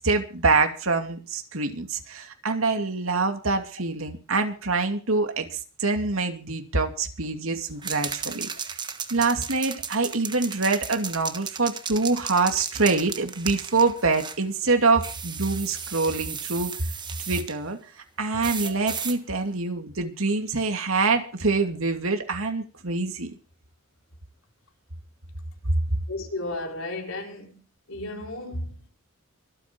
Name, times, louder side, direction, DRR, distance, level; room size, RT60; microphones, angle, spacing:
voice 1, 0.0-8.8 9.1-16.7 17.3-17.8 18.2-23.3, right 3 dB, 85° right, 2.6 m, -25 dB
sound 1, 7.8-14.4 15.0-17.5 18.4-19.2, right 6 dB, 20° right, 1.3 m, -35 dB
voice 2, 26.1-27.6 27.9-28.9, left 2 dB, 75° left, 4.0 m, -34 dB
24.5 x 8.9 x 4.6 m
head